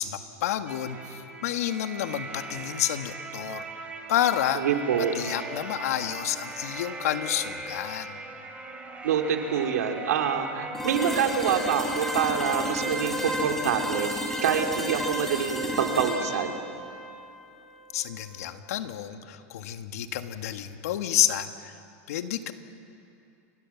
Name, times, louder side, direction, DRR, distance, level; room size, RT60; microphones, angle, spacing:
voice 1, 0.0-3.6 4.1-4.6 4.9-8.2 17.9-21.7 22.1-22.5, left 11 dB, 75° left, 7 dB, 1.8 m, -29 dB
sound 1, 0.7-13.3, right 3 dB, 15° right, 2.7 m, -40 dB
voice 2, 4.5-5.1 9.0-14.1 14.4-16.6, right 7 dB, 90° right, 3 dB, 2.9 m, -26 dB
sound 2, 10.7-18.6, equal, 5° left, 3.4 m, -32 dB
29.5 x 24.5 x 7.3 m, 2.6 s
supercardioid pair, 145°, 8 cm